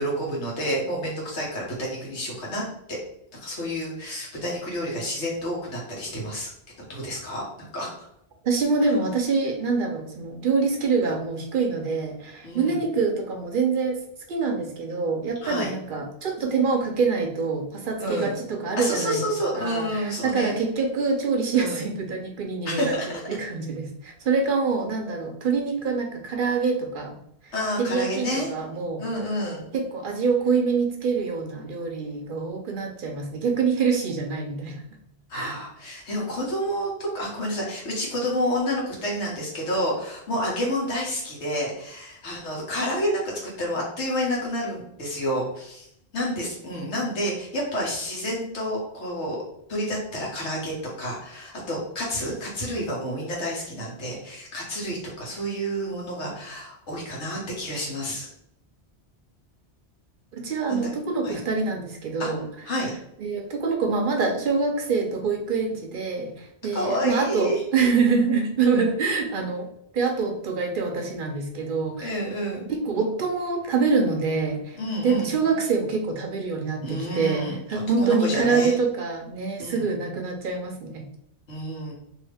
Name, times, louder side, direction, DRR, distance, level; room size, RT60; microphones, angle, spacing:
voice 1, 0.0-3.0 3.3-6.5 6.9-7.4 7.7-7.9 8.8-8.9 12.4-12.8 15.4-15.7 18.0-18.4 18.8-20.6 21.5-21.9 22.6-23.1 27.5-28.5 29.0-29.6 35.3-45.9 46.1-49.4 49.7-58.3 60.7-60.9 61.2-61.4 62.2-62.3 62.6-62.9 66.7-67.6 72.0-72.7 74.8-75.3 76.8-77.6 78.0-78.8 79.6-79.8 81.5-81.9, equal, 85° left, -3 dB, 1.4 m, -29 dB
voice 2, 8.4-14.0 14.3-22.9 23.3-27.2 27.4-29.0 29.7-34.8 35.3-35.6 60.3-62.5 63.2-69.7 69.9-72.1 72.7-74.8 75.0-81.1, right 4 dB, 60° right, 3 dB, 0.6 m, -25 dB
2.8 x 2.7 x 3.3 m, 0.75 s
omnidirectional pair, 1.1 m